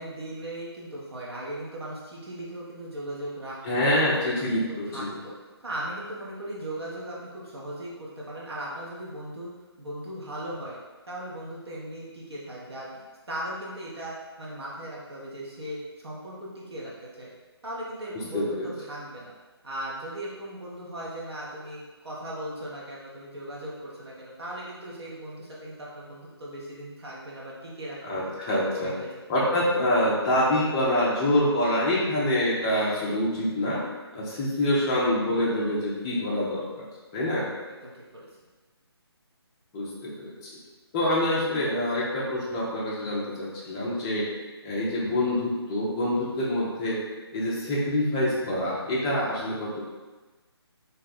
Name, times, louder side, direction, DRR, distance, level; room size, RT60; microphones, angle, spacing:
voice 1, 0.0-9.5 9.8-10.8 11.1-16.9 17.2-17.3 17.6-19.3 19.6-28.2 28.6-29.2 37.8-38.3, right 1 dB, 70° right, -5 dB, 0.9 m, -38 dB
voice 2, 3.6-5.1 18.3-18.7 28.0-28.9 29.3-33.8 34.1-36.9 37.1-37.5 39.7-40.3 40.9-44.3 44.6-47.0 47.3-49.8, left 1 dB, 10° left, -6 dB, 0.3 m, -26 dB
2.7 x 2.1 x 4.0 m, 1.2 s
figure-of-eight pair, 150°, 14 cm